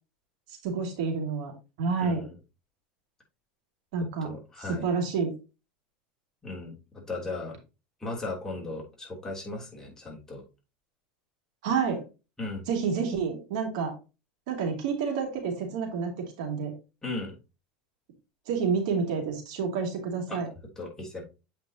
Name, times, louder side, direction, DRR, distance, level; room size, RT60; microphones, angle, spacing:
voice 1, 0.6-1.5 1.8-2.2 3.9-4.3 4.7-5.3 11.6-12.0 12.7-13.9 14.5-16.7 18.5-20.5, right 5 dB, 75° right, 2 dB, 2.5 m, -29 dB
voice 2, 2.0-2.3 4.2-4.8 6.4-6.7 7.1-7.5 8.0-10.4 12.4-12.6 17.0-17.3 20.3-20.4 20.8-21.2, left 2 dB, 15° left, -2 dB, 3.0 m, -36 dB
8.0 x 5.1 x 2.8 m, 0.29 s
supercardioid pair, 115°, 4 cm